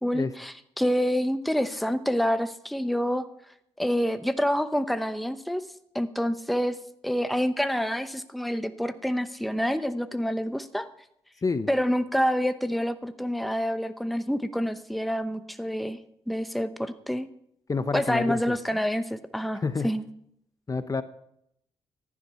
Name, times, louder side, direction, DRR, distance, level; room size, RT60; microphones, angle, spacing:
voice 1, 0.0-3.3 3.8-5.6 5.9-6.8 7.0-10.9 11.7-16.0 16.3-17.3 17.9-20.1, equal, ahead, 9 dB, 0.9 m, -27 dB
voice 2, 17.7-18.6 19.6-19.9 20.7-21.0, left 4 dB, 30° left, 11 dB, 0.8 m, -28 dB
14.5 x 11.0 x 5.7 m, 0.75 s
cardioid pair, 80°, 11 cm